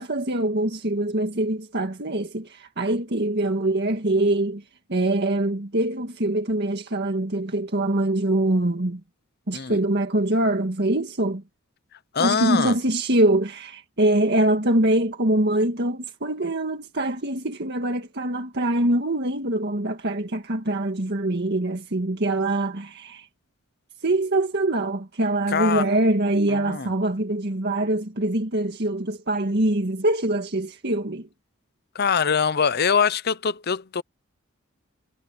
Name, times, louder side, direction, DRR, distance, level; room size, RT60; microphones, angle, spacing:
voice 1, 0.0-4.6 4.9-9.0 9.5-11.4 12.2-23.3 24.0-31.3, right 1 dB, 50° right, 1.8 m, -24 dB
voice 2, 12.1-12.8 25.5-25.9 26.5-26.9 31.9-34.0, left 6 dB, 50° left, 0.7 m, -23 dB
head